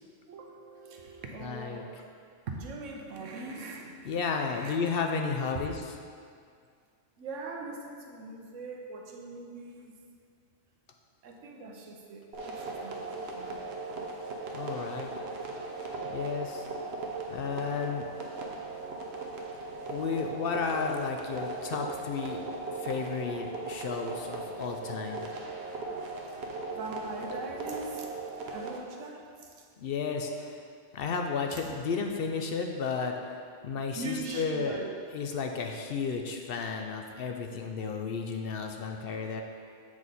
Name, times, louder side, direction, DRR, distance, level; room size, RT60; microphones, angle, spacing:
voice 1, 0.3-2.0 2.5-4.0 4.4-4.8 7.2-10.0 11.2-13.7 15.8-16.0 26.3-26.4 26.7-28.1 28.5-29.5 31.5-31.6 33.9-34.9, right 3 dB, 80° right, 1 dB, 1.2 m, -41 dB
voice 2, 1.4-1.8 4.0-6.0 14.5-15.1 16.1-16.7 17.3-18.0 19.9-22.4 22.7-25.2 29.8-30.6 30.9-34.8 35.1-39.4, left 5 dB, 60° left, 3 dB, 0.6 m, -33 dB
sound 1, 12.3-28.8, right 3 dB, 60° right, 1.0 m, -38 dB
7.7 x 4.8 x 4.1 m, 2.2 s
omnidirectional pair, 1.3 m